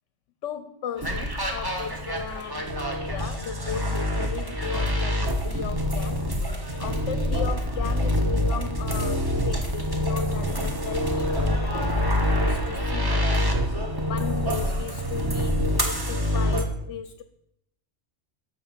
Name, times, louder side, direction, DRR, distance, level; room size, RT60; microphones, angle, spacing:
voice 1, 0.4-6.5 6.8-13.6 14.1-17.2, left 8 dB, 70° left, 11 dB, 0.9 m, -36 dB
sound 1, 1.0-16.6, equal, 20° right, 1.2 m, -26 dB
12.5 x 4.6 x 7.2 m, 0.81 s
omnidirectional pair, 1.3 m